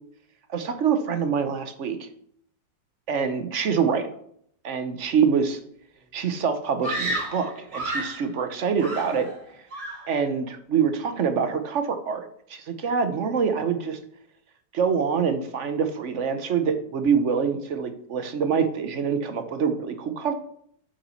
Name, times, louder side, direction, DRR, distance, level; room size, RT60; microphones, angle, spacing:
voice 1, 0.5-2.0 3.1-4.1 4.6-5.6 6.1-9.3 10.1-14.0 14.7-20.3, right 6 dB, 55° right, 9 dB, 1.0 m, -25 dB
Screaming, 6.8-8.2 8.8-9.4 9.7-10.1, right 1 dB, 80° right, 3.0 m, -31 dB
8.1 x 5.8 x 5.6 m, 0.67 s
omnidirectional pair, 1.9 m